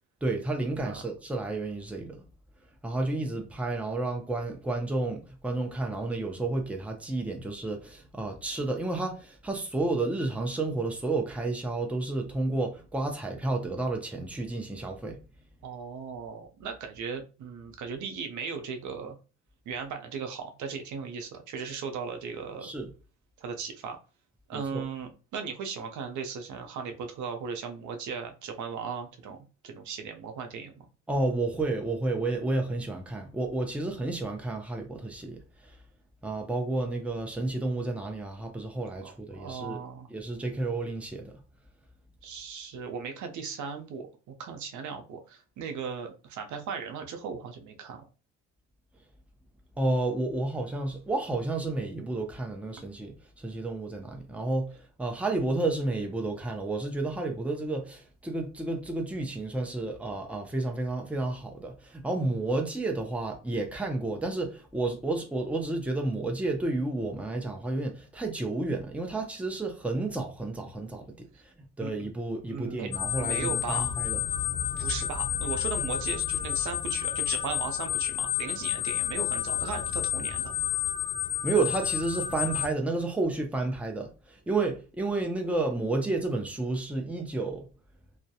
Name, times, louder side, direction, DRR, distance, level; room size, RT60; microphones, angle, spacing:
voice 1, 0.2-2.2 2.8-15.2 22.6-22.9 24.5-24.8 31.1-35.8 36.2-39.8 40.1-41.3 49.8-74.2 81.4-87.7, right 2 dB, 5° right, 0.5 m, -31 dB
voice 2, 15.6-19.2 19.7-22.7 23.4-24.0 24.5-30.9 39.0-40.1 42.2-48.0 71.8-71.9 72.5-72.9 73.2-73.9 74.8-80.5, right 6 dB, 75° right, 0.6 m, -37 dB
sound 1, 72.9-82.7, left 11 dB, 75° left, 0.6 m, -30 dB
2.2 x 2.1 x 2.7 m
cardioid pair, 90°, 30 cm